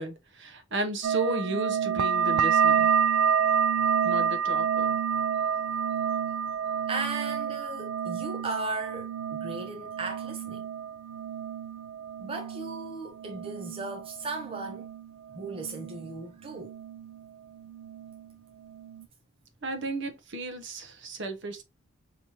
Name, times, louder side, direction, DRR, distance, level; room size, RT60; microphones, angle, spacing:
voice 1, 0.0-2.9 4.0-5.0 19.6-21.6, right 1 dB, 55° right, 0.8 m, -34 dB
sound 1, 1.0-16.2 16.5-17.3 17.6-18.3 18.7-19.1, right 7 dB, 85° right, 0.4 m, -29 dB
voice 2, 6.9-10.6 12.2-14.9 15.3-16.7, right 3 dB, 25° right, 0.5 m, -36 dB
5.2 x 2.9 x 2.8 m
head